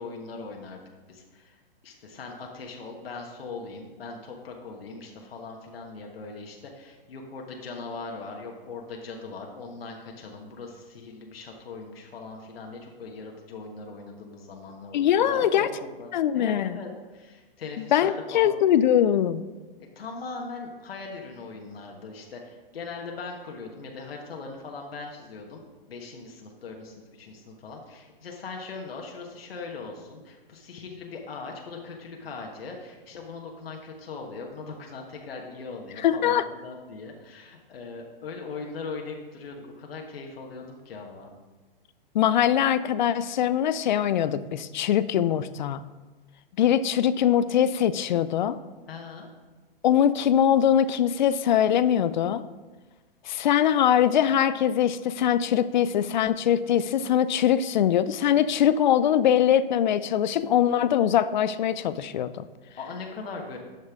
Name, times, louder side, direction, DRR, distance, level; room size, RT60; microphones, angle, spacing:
voice 1, 0.0-18.6 19.8-25.6 25.9-41.3 48.9-49.3 62.8-63.6, left 4 dB, 80° left, 1 dB, 1.3 m, -40 dB
voice 2, 14.9-15.7 16.1-16.8 17.9-19.4 36.0-36.4 42.1-45.8 46.6-48.6 49.8-52.4 53.3-62.4, left 10 dB, 50° left, 15 dB, 0.4 m, -22 dB
10.5 x 5.4 x 3.6 m, 1.3 s
hypercardioid pair, 140°, 29 cm